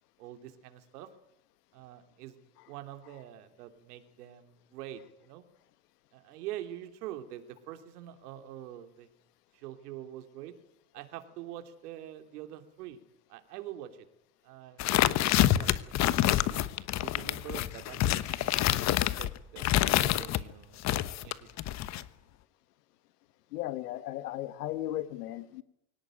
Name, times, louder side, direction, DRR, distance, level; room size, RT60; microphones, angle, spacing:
voice 1, 0.2-1.1 1.7-2.4 2.7-5.4 6.1-9.1 9.5-10.5 10.9-13.0 13.3-14.0 14.4-16.4 17.0-18.5 18.8-20.8 21.2-21.6, right 12 dB, 80° right, 8 dB, 3.2 m, -45 dB
sound 1, 14.8-20.4 20.8-22.0, left 13 dB, 35° left, 1.1 m, -27 dB
voice 2, 23.5-25.6, left 14 dB, 85° left, 14 dB, 1.5 m, -36 dB
23.5 x 18.0 x 9.1 m, 0.78 s
supercardioid pair, 135°, 46 cm